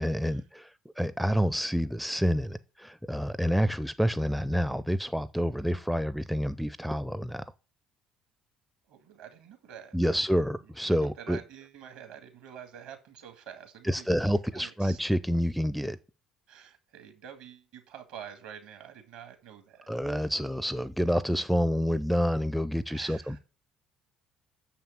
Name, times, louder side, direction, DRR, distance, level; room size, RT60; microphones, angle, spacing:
voice 1, 0.0-7.4 9.9-11.4 13.8-16.0 19.9-23.4, equal, ahead, 0.5 m, -28 dB
voice 2, 8.9-10.1 11.2-14.2 14.5-15.0 16.5-20.3 22.9-23.4, right 9 dB, 60° right, 2.1 m, -47 dB
6.9 x 5.8 x 7.5 m
figure-of-eight pair, 50°, 2 cm